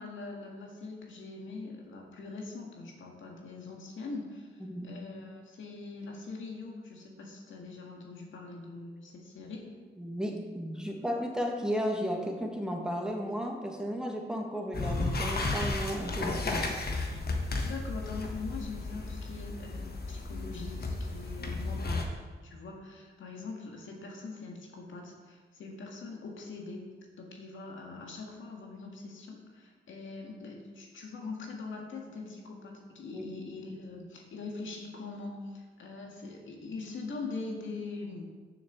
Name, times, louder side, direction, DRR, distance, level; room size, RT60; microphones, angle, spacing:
voice 1, 0.0-4.5 4.8-9.7 17.6-22.1 22.4-26.8 27.2-38.3, left 3 dB, 90° left, 0 dB, 1.8 m, -42 dB
voice 2, 4.6-4.9 10.0-16.7 33.1-33.3, equal, 5° right, 1 dB, 1.7 m, -34 dB
sound 1, 14.7-22.0, left 3 dB, 55° left, 1.4 m, -34 dB
7.0 x 6.6 x 6.9 m, 1.4 s
cardioid pair, 70°, 19 cm